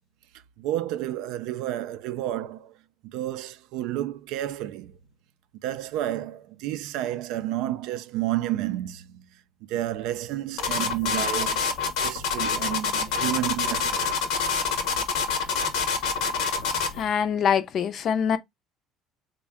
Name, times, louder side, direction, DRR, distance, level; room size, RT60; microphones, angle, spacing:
voice 1, 0.6-2.8 3.0-5.0 5.5-11.7 12.0-14.2 16.5-16.6, right 13 dB, 75° right, 0.3 m, -31 dB
sound 1, 10.6-17.0, left 5 dB, 75° left, 0.8 m, -26 dB
voice 2, 16.9-18.4, left 7 dB, 45° left, 0.4 m, -24 dB
3.4 x 2.1 x 3.5 m
cardioid pair, 120°, 0 cm